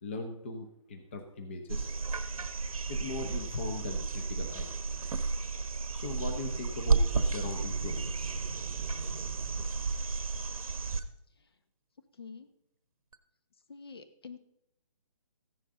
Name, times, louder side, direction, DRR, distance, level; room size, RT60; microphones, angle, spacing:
voice 1, 0.0-1.9 2.9-5.3 5.6-8.4, left 3 dB, 20° left, 4 dB, 0.8 m, -40 dB
sound 1, 1.7-11.0 13.1-13.2, right 4 dB, 85° right, 1.2 m, -32 dB
voice 2, 13.7-14.4, left 5 dB, 45° left, 10 dB, 1.0 m, -46 dB
15.0 x 10.5 x 3.7 m, 0.78 s
hypercardioid pair, 175°, 18 cm